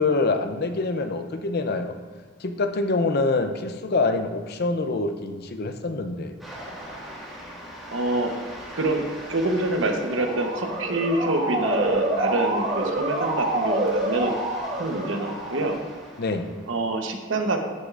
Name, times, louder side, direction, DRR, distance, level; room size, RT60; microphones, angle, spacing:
voice 1, 0.0-2.0 2.4-6.3 16.2-16.5, left 3 dB, 55° left, 8 dB, 0.6 m, -25 dB
sound 1, 6.4-16.7, equal, ahead, 1.8 m, -41 dB
voice 2, 7.9-8.3 8.7-14.3 14.8-15.8 16.7-17.6, right 2 dB, 85° right, 4 dB, 1.0 m, -26 dB
Motor vehicle (road) / Siren, 9.9-15.8, right 1 dB, 50° right, 1.6 m, -27 dB
13.0 x 6.5 x 2.5 m, 1.4 s
head